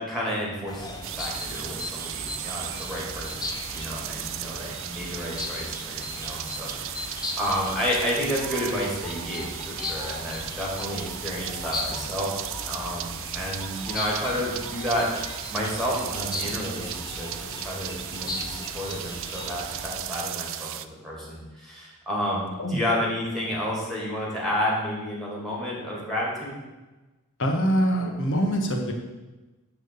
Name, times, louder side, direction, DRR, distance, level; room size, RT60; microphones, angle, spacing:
voice 1, 0.0-12.3 12.7-15.1 15.5-26.6, equal, ahead, -4 dB, 2.6 m, -31 dB
sound 1, 0.7-20.0, left 2 dB, 15° left, 0.8 m, -37 dB
sound 2, 1.0-20.8, right 12 dB, 60° right, 0.4 m, -36 dB
voice 2, 27.4-28.9, equal, 60° left, 2 dB, 1.4 m, -24 dB
11.0 x 3.7 x 7.0 m, 1.2 s
head